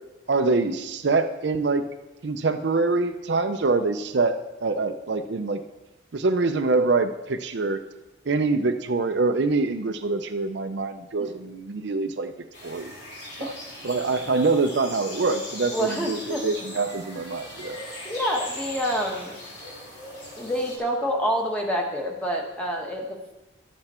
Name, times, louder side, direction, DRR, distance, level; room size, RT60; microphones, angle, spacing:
voice 1, 0.3-1.8 2.2-5.6 6.1-7.8 8.3-12.3 12.6-12.9 13.4-13.5 13.8-17.8, right 3 dB, 60° right, 8 dB, 0.5 m, -25 dB
sound 1, 12.5-20.8, left 1 dB, 60° left, 3.2 m, -39 dB
voice 2, 15.7-16.4 18.0-19.3 20.4-23.3, equal, 5° left, 0 dB, 1.2 m, -27 dB
12.0 x 8.0 x 4.3 m, 1.0 s
head